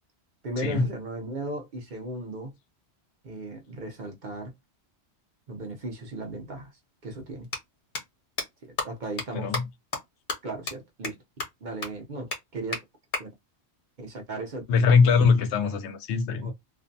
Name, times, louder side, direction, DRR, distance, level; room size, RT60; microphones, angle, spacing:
voice 1, 0.4-2.5 3.2-4.5 5.5-6.7 7.0-7.5 8.6-9.6 10.4-11.2 11.6-12.3 12.5-12.8 13.2-13.3 14.0-14.6 15.1-15.2 16.4-16.5, right 2 dB, 50° right, 0.7 m, -36 dB
sound 1, 6.2-6.3 7.4-7.6 7.9-8.0 8.4-8.5 8.8-8.9 9.2-9.3 9.5-9.6 9.9-10.0 10.3-10.4 10.7-10.8 11.0-11.1 11.4-11.5 11.8-11.9 12.3-12.4 12.7-12.8 13.1-13.2 14.9-15.9, left 3 dB, 65° left, 1.1 m, -32 dB
voice 2, 14.7-16.5, left 5 dB, 90° left, 0.9 m, -22 dB
2.5 x 2.1 x 2.6 m
omnidirectional pair, 1.1 m